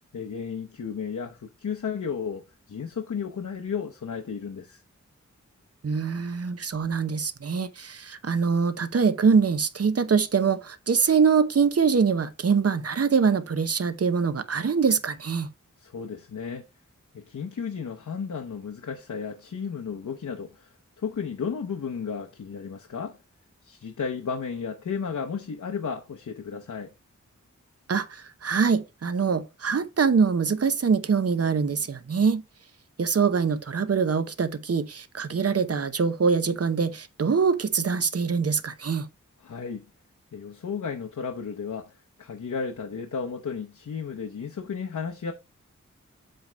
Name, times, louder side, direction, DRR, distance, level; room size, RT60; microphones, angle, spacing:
voice 1, 0.1-4.8 15.8-16.7 17.1-23.2 23.6-26.9 39.4-39.8 40.3-41.9 42.2-45.3, left 6 dB, 70° left, 0.9 m, -33 dB
voice 2, 5.8-15.5 27.9-32.4 33.0-39.1, right 5 dB, 50° right, 0.8 m, -24 dB
7.8 x 3.4 x 5.1 m
wide cardioid pair, 75°, 30 cm